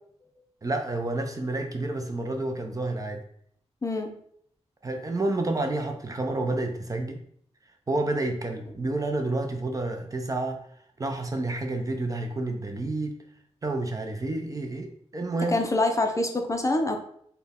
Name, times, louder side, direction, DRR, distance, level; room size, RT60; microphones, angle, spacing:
voice 1, 0.6-3.2 4.8-7.2 7.9-10.6 11.0-13.2 13.6-15.6, right 2 dB, 30° right, 4 dB, 0.5 m, -29 dB
voice 2, 3.8-4.2 15.5-17.0, left 2 dB, 30° left, 4 dB, 0.4 m, -25 dB
4.2 x 2.2 x 3.5 m, 0.66 s
wide cardioid pair, 105°, 11 cm